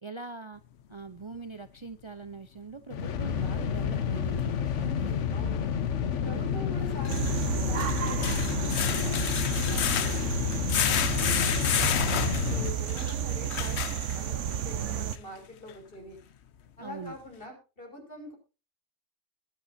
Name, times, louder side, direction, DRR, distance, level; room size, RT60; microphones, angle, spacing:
voice 1, 0.0-0.6 0.9-5.2 6.3-6.8 11.2-11.5 16.8-17.2, right 4 dB, 30° right, 10 dB, 0.7 m, -42 dB
sound 1, 2.9-12.7, left 7 dB, 90° left, 1.3 m, -30 dB
sound 2, 4.4-4.5 6.9-14.5 15.1-15.2 15.7-15.8, left 10 dB, 70° left, 1.0 m, -31 dB
voice 2, 4.8-5.6 6.2-7.3 7.6-10.5 10.9-16.2 16.8-18.3, left 1 dB, 50° left, 3 dB, 5.9 m, -44 dB
sound 3, 7.1-15.2, right 9 dB, 90° right, 1.2 m, -32 dB
21.5 x 8.6 x 2.7 m, 0.32 s
omnidirectional pair, 1.2 m